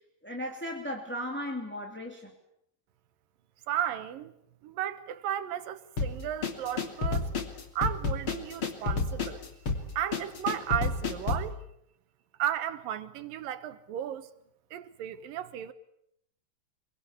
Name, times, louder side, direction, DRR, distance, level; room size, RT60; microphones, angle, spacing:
voice 1, 0.2-2.3, equal, 5° left, 2.2 m, -36 dB
voice 2, 3.7-4.3 4.6-7.3 7.7-9.4 10.0-11.6 12.4-14.3 14.7-15.7, right 10 dB, 70° right, 2.8 m, -34 dB
sound 1, 6.0-11.5, left 4 dB, 35° left, 3.4 m, -30 dB
26.5 x 23.5 x 8.4 m
omnidirectional pair, 4.3 m